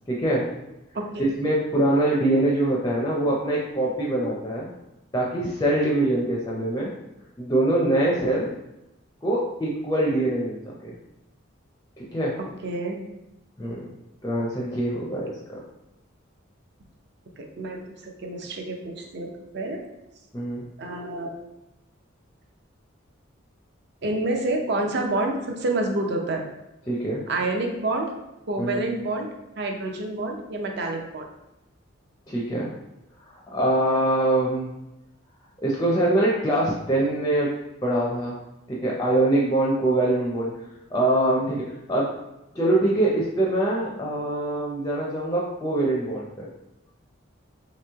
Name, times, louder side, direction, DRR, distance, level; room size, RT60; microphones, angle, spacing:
voice 1, 0.1-0.5 1.2-4.7 5.1-6.9 7.4-8.5 9.2-10.9 12.0-12.3 13.6-13.9 14.2-15.3 20.3-20.6 26.9-27.2 28.6-28.8 32.3-32.7 33.5-34.7 35.6-37.5 37.8-38.4 38.7-40.5 40.9-42.1 42.5-46.5, right 1 dB, 15° left, -4 dB, 0.4 m, -23 dB
voice 2, 12.4-13.0 17.4-19.8 20.8-21.3 24.0-26.4 27.3-28.1 28.5-29.3 29.6-31.3, right 2 dB, 55° right, 2 dB, 0.5 m, -28 dB
3.0 x 2.8 x 3.4 m, 0.91 s
head